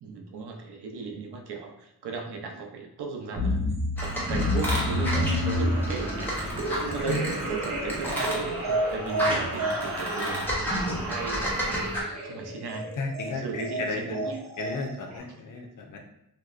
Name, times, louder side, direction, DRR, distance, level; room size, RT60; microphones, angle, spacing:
voice 1, 0.0-3.6 4.0-10.5 10.8-11.9 12.2-12.9 13.3-14.4, right 4 dB, 80° right, 2 dB, 0.6 m, -36 dB
sound 1, 3.3-15.2, equal, 45° right, 0.7 m, -30 dB
sound 2, 4.0-12.0, equal, 5° left, 0.6 m, -31 dB
voice 2, 10.7-11.2 13.0-14.2 14.6-16.0, left 3 dB, 50° left, 2 dB, 0.5 m, -34 dB
2.7 x 2.0 x 2.4 m, 0.80 s
wide cardioid pair, 135°, 39 cm